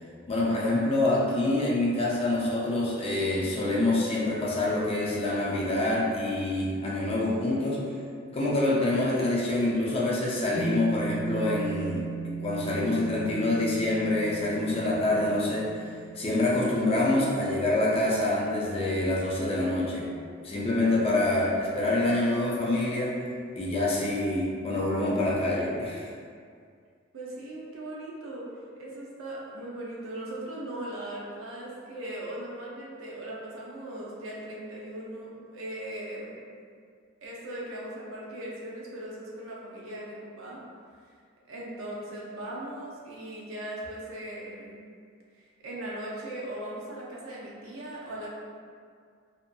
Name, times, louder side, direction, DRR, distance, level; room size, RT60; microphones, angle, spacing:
voice 1, 0.3-7.8 8.3-12.0 12.4-15.7 16.2-20.1 20.4-23.1 23.6-26.1, left 2 dB, 30° left, -5 dB, 0.4 m, -26 dB
sound 1, 10.5-19.0, right 5 dB, 80° left, 0.7 m, -38 dB
voice 2, 27.1-28.5 28.8-36.4 37.2-40.6 41.5-44.8 45.6-48.3, right 1 dB, 85° right, -5 dB, 0.6 m, -39 dB
2.7 x 2.5 x 2.2 m, 2.2 s
head